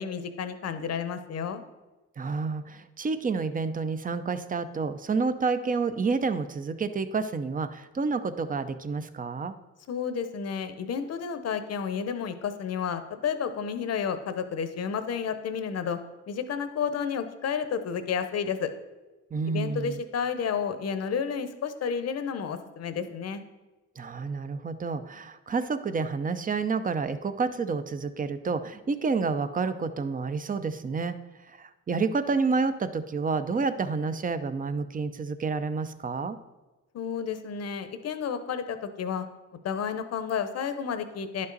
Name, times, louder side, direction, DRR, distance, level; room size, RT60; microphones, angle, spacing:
voice 1, 0.0-1.6 9.9-16.0 16.3-18.7 19.5-23.4 36.9-39.3 39.6-41.5, left 7 dB, 55° left, 10 dB, 0.8 m, -31 dB
voice 2, 2.2-9.5 19.3-20.0 24.0-31.2 31.5-36.4, right 4 dB, 30° right, 11 dB, 0.6 m, -29 dB
11.0 x 5.4 x 4.0 m, 1.1 s
cardioid pair, 90°, 30 cm